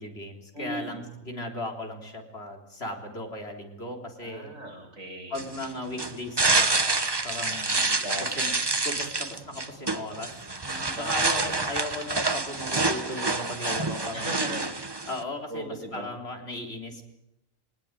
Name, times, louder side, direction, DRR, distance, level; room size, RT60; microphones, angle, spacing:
voice 1, 0.0-4.6 5.3-7.0 7.2-7.9 8.2-8.5 8.8-10.5 10.9-14.5 15.1-17.0, left 1 dB, 50° left, 2 dB, 4.0 m, -37 dB
voice 2, 0.5-1.0 4.2-5.4 7.7-8.3 10.6-11.8 14.1-14.7 15.5-16.1, right 1 dB, 80° right, 1 dB, 7.0 m, -38 dB
sound 1, 5.3-15.2, right 3 dB, 20° right, 1.1 m, -27 dB
23.0 x 19.5 x 9.1 m, 0.86 s
omnidirectional pair, 1.4 m